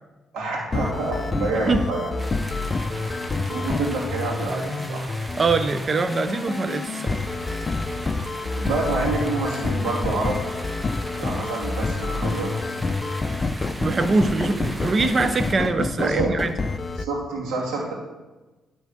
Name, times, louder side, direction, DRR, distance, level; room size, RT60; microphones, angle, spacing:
voice 1, 0.3-2.1 2.9-3.1 3.5-5.1 8.5-10.4 11.2-12.5 16.0-16.3 17.0-17.9, right 3 dB, 85° right, -3 dB, 2.5 m, -27 dB
sound 1, 0.7-17.1, left 3 dB, 30° left, 0.6 m, -28 dB
sound 2, 2.2-15.5, right 1 dB, 15° right, 0.9 m, -39 dB
voice 2, 5.4-7.2 13.8-16.5, right 3 dB, 40° right, 9 dB, 0.6 m, -23 dB
11.0 x 3.9 x 7.7 m, 1.2 s
cardioid pair, 90°, 0 cm